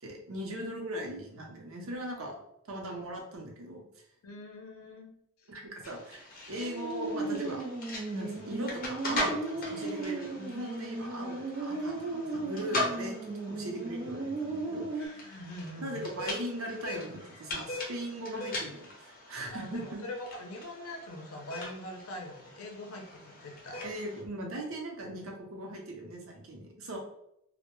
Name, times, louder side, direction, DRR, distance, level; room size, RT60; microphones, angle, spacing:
voice 1, 0.0-2.4 2.7-3.8 5.5-6.2 6.5-7.6 8.1-15.3 15.8-20.0 23.8-27.0, right 1 dB, 75° right, 0 dB, 0.6 m, -39 dB
voice 2, 4.2-5.1 5.4-5.5 15.0-16.1 19.5-23.8, left 1 dB, 80° left, 2 dB, 0.5 m, -43 dB
sound 1, 5.8-24.2, left 1 dB, 40° left, 0.6 m, -40 dB
sound 2, 6.5-15.1, right 2 dB, 35° right, 0.3 m, -36 dB
2.1 x 2.1 x 2.9 m, 0.77 s
head